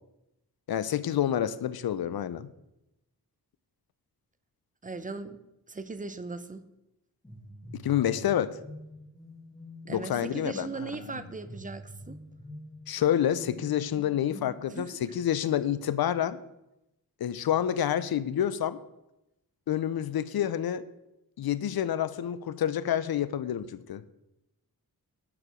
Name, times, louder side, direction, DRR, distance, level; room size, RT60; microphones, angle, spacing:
voice 1, 0.7-2.5 7.8-8.6 9.9-10.9 12.9-16.4 17.2-18.8 19.7-20.8 21.4-24.1, left 10 dB, 75° left, 16 dB, 0.5 m, -28 dB
voice 2, 4.8-5.4 5.7-6.6 9.9-12.2 14.8-15.0, right 4 dB, 20° right, 12 dB, 0.6 m, -38 dB
sound 1, 7.2-14.9, left 1 dB, 10° left, 1.9 m, -46 dB
11.0 x 4.7 x 5.0 m, 0.90 s
wide cardioid pair, 100°, 38 cm